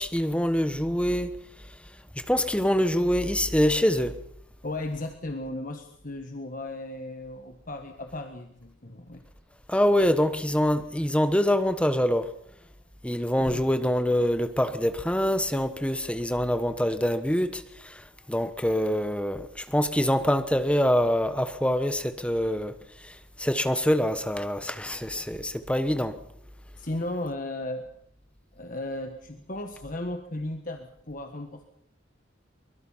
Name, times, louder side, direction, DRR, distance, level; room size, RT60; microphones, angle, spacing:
voice 1, 0.0-1.4 2.3-4.2 9.7-12.3 13.0-22.7 23.0-26.2, equal, 5° left, 1.1 m, -25 dB
voice 2, 4.6-9.2 13.4-13.6 26.8-27.9 28.5-31.7, left 1 dB, 40° left, 1.5 m, -35 dB
23.5 x 22.0 x 5.7 m
head